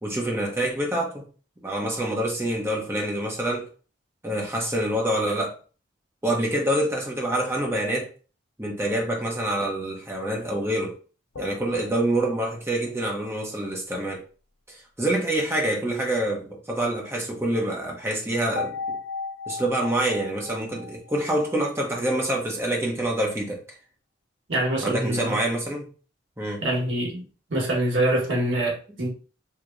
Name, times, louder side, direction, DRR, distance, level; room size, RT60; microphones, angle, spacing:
voice 1, 0.0-1.2 1.6-3.7 4.2-5.5 6.2-8.1 8.6-10.9 11.4-14.2 14.7-19.0 19.5-23.6 24.8-25.9 26.4-26.6, right 1 dB, 15° right, 0.8 m, -26 dB
sound 1, 11.3-12.9 18.6-21.9, left 4 dB, 70° left, 0.5 m, -36 dB
voice 2, 24.5-25.4 26.6-27.2 27.5-29.1, right 1 dB, 75° right, 1.3 m, -25 dB
4.6 x 2.9 x 2.5 m
head